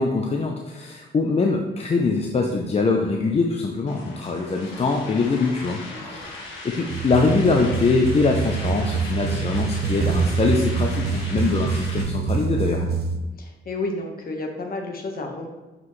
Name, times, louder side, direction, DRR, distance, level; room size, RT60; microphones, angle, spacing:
voice 1, 0.0-12.9, left 3 dB, 30° left, 1 dB, 0.7 m, -23 dB
sound 1, 3.9-12.0, left 2 dB, 75° left, 1.8 m, -38 dB
voice 2, 5.9-6.2 13.4-15.5, left 2 dB, 50° left, 2 dB, 1.4 m, -31 dB
sound 2, 6.9-13.2, right 5 dB, 55° right, 0.7 m, -25 dB
7.8 x 5.0 x 3.2 m, 1.1 s
cardioid pair, 90°, 20 cm